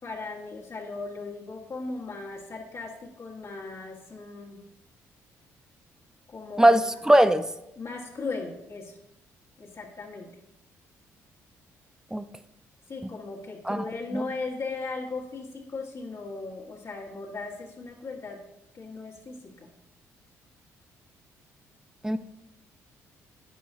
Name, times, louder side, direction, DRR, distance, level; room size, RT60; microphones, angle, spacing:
voice 1, 0.0-4.6 6.3-6.7 7.7-9.0 9.6-10.3 12.9-18.4 18.7-19.7, left 3 dB, 45° left, -3 dB, 1.7 m, -37 dB
voice 2, 7.1-7.5 12.1-12.2 13.7-13.8 14.1-14.2 22.0-22.2, right 1 dB, 10° right, 12 dB, 0.6 m, -19 dB
10.5 x 9.4 x 2.8 m, 0.84 s
supercardioid pair, 60°, 7 cm